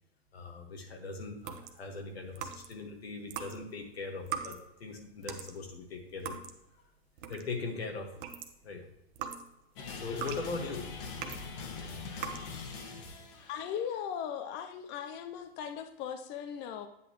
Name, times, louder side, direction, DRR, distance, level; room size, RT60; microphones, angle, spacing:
voice 1, 0.3-6.4 7.3-8.1 8.6-8.8 9.8-10.9, left 4 dB, 85° left, 3 dB, 1.7 m, -40 dB
sound 1, 1.4-2.9 3.2-7.7 8.0-11.6 12.1-12.5, right 8 dB, 60° right, 1.1 m, -42 dB
sound 2, 9.8-13.9, left 4 dB, 60° left, 1.7 m, -43 dB
voice 2, 13.5-16.9, left 8 dB, 35° left, 8 dB, 0.7 m, -38 dB
9.3 x 8.2 x 3.1 m, 0.83 s
hypercardioid pair, 100°, 30 cm